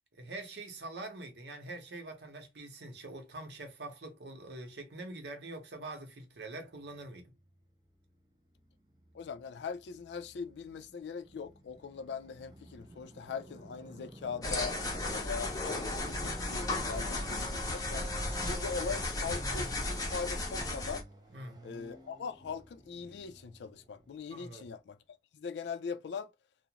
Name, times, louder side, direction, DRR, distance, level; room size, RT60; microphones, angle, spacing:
voice 1, 0.1-7.3 21.3-21.6 24.3-24.6, right 2 dB, 75° right, 0.8 m, -44 dB
Motorcycle, 6.7-24.8, right 1 dB, 25° right, 0.6 m, -54 dB
voice 2, 9.1-14.7 15.1-18.1 18.5-21.0 21.6-25.0 25.3-26.3, left 5 dB, 80° left, 0.3 m, -41 dB
sound 1, 14.4-21.0, left 2 dB, 20° left, 0.6 m, -35 dB
Car / Accelerating revving vroom, 15.1-20.0, equal, ahead, 0.9 m, -47 dB
2.4 x 2.0 x 2.8 m
head